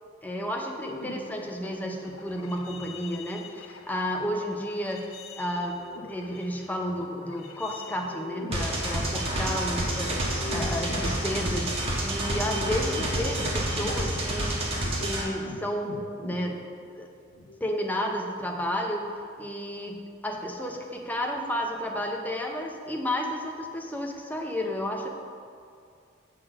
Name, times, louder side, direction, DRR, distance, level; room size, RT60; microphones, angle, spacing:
voice 1, 0.2-5.1 5.4-14.7 15.0-16.7 17.0-17.1 17.6-19.1 19.4-20.0 20.2-25.1, equal, 10° left, 1 dB, 0.5 m, -32 dB
sound 1, 0.8-16.9 17.3-17.6, left 3 dB, 90° left, 0.6 m, -42 dB
sound 2, 8.5-15.2, right 1 dB, 30° right, 1.3 m, -29 dB
6.3 x 4.0 x 6.3 m, 2.3 s
head